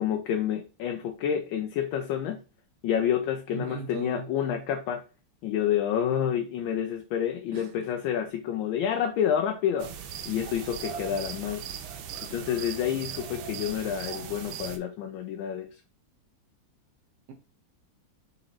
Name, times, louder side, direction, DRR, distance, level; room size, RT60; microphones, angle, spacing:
voice 1, 0.0-2.4 2.8-5.0 5.4-9.9 10.3-11.6 12.3-15.7, left 9 dB, 85° left, 1.3 m, -29 dB
voice 2, 3.5-4.3 7.5-7.7, right 4 dB, 65° right, 1.2 m, -38 dB
sound 1, 9.8-14.8, right 8 dB, 90° right, 1.4 m, -38 dB
4.0 x 3.3 x 3.0 m
omnidirectional pair, 2.1 m